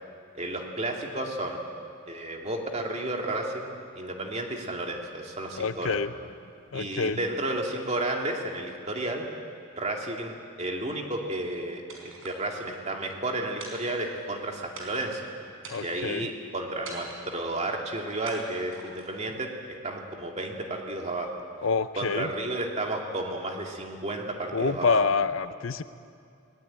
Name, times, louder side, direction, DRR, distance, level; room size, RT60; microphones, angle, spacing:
voice 1, 0.3-1.6 2.1-6.0 6.7-9.3 9.8-15.2 15.8-19.5 19.8-21.3 21.9-25.0, right 2 dB, 30° right, 1 dB, 2.5 m, -32 dB
voice 2, 5.6-6.1 6.7-7.2 15.7-16.3 21.6-22.3 24.5-25.8, left 5 dB, 60° left, 12 dB, 0.7 m, -27 dB
sound 1, 11.9-12.8 13.6-14.4 14.7-15.2 15.6-16.2 16.8-17.4 18.2-19.2, right 2 dB, 65° right, 4.5 m, -43 dB
21.0 x 19.0 x 8.9 m, 2.5 s
head